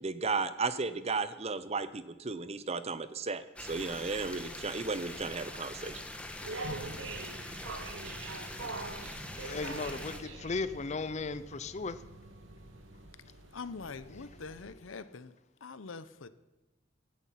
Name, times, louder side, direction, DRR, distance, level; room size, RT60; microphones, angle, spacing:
voice 1, 0.0-6.0, right 4 dB, 30° right, 0.7 m, -34 dB
sound 1, 3.6-10.2, left 1 dB, 5° left, 1.3 m, -43 dB
sound 2, 6.4-14.7, right 3 dB, 75° right, 1.2 m, -44 dB
sound 3, 7.0-13.1, equal, 50° right, 1.6 m, -53 dB
voice 2, 9.4-12.0, left 3 dB, 35° left, 0.5 m, -36 dB
voice 3, 13.5-15.3 15.6-16.3, left 4 dB, 75° left, 0.8 m, -44 dB
16.0 x 11.0 x 5.8 m
head